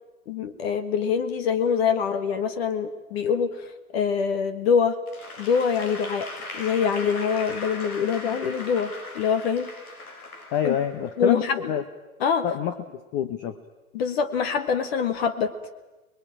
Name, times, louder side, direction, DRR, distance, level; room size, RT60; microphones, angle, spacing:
voice 1, 0.3-5.0 5.4-6.3 6.5-9.7 10.6-10.7 11.2-11.7 12.2-12.5 13.9-15.5, left 6 dB, 45° left, 10 dB, 1.7 m, -24 dB
Applause / Crowd, 5.1-11.3, left 2 dB, 75° left, 4.9 m, -39 dB
voice 2, 10.5-11.4 11.7-11.8 12.4-13.6, left 9 dB, 30° left, 9 dB, 1.1 m, -27 dB
26.5 x 21.5 x 9.0 m, 1.1 s
hypercardioid pair, 120°, 43 cm